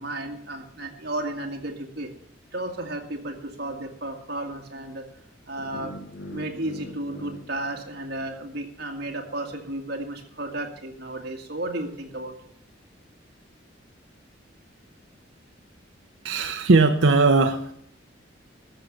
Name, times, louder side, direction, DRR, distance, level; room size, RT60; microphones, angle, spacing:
voice 1, 0.0-2.1 2.5-5.0 5.5-5.9 6.3-12.3, right 1 dB, 55° right, 2 dB, 2.1 m, -33 dB
sound 1, 5.6-8.6, equal, 65° left, 1.5 m, -42 dB
voice 2, 16.2-17.7, right 3 dB, 85° right, 6 dB, 0.7 m, -19 dB
13.5 x 6.5 x 7.1 m, 0.68 s
head